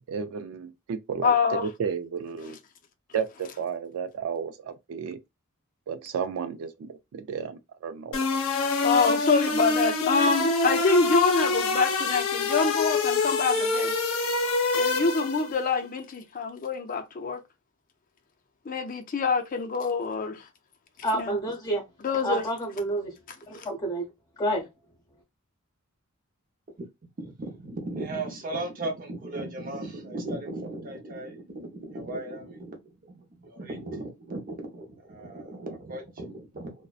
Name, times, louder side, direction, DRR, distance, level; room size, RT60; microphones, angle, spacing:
voice 1, 0.1-2.6 3.1-5.2 5.9-8.3, right 6 dB, 85° right, 0.3 m, -33 dB
voice 2, 1.2-1.7 2.4-2.5 8.8-13.9 14.7-17.4 18.7-20.4 21.1-21.4 22.0-22.4, left 4 dB, 40° left, 0.4 m, -25 dB
sound 1, 8.1-15.5, left 3 dB, 90° left, 0.6 m, -26 dB
voice 3, 21.0-21.9 22.2-23.2 23.5-24.0 24.4-24.7, right 1 dB, 20° left, 0.8 m, -28 dB
voice 4, 27.4-32.8 33.1-36.7, right 2 dB, 40° right, 0.7 m, -36 dB
2.6 x 2.1 x 2.3 m
head